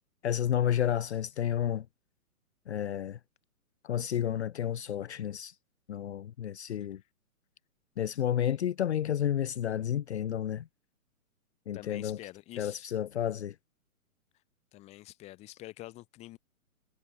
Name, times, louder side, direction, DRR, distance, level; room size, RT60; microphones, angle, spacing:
voice 1, 0.2-1.8 2.7-3.2 3.8-5.5 5.9-7.0 8.0-10.7 11.7-12.2 12.6-13.5, left 10 dB, 50° left, 1.0 m, -31 dB
voice 2, 11.7-12.9 14.7-16.4, left 17 dB, 15° left, 2.3 m, -47 dB
hypercardioid pair, 165°, 44 cm